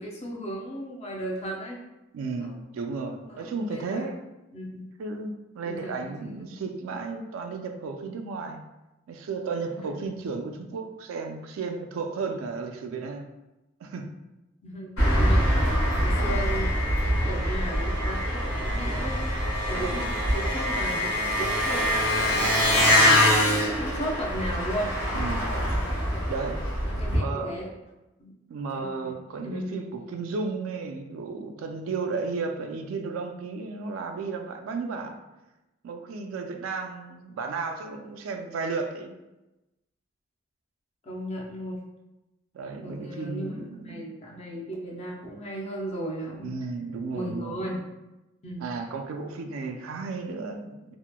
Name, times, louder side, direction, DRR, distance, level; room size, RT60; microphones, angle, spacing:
voice 1, 0.0-1.8 2.4-2.6 3.3-4.1 4.5-4.8 5.6-6.4 9.7-10.1 14.6-15.6 16.0-16.7 17.0-19.2 19.7-23.0 23.5-25.0 26.1-26.3 26.9-27.7 28.2-28.3 28.7-29.8 41.0-41.8 42.8-46.5 47.1-47.8 48.4-48.7, right 1 dB, 30° left, -2 dB, 0.4 m, -36 dB
voice 2, 2.1-4.2 5.0-8.6 9.1-13.3 13.8-14.1 16.2-16.5 19.7-20.0 25.1-25.5 26.3-26.7 27.1-27.6 28.5-35.2 35.8-39.2 42.5-44.1 46.4-47.6 48.6-51.0, right 4 dB, 85° right, 5 dB, 0.3 m, -34 dB
Engine, 15.0-27.2, equal, 90° left, 1.1 m, -24 dB
2.9 x 2.1 x 2.2 m, 0.99 s
head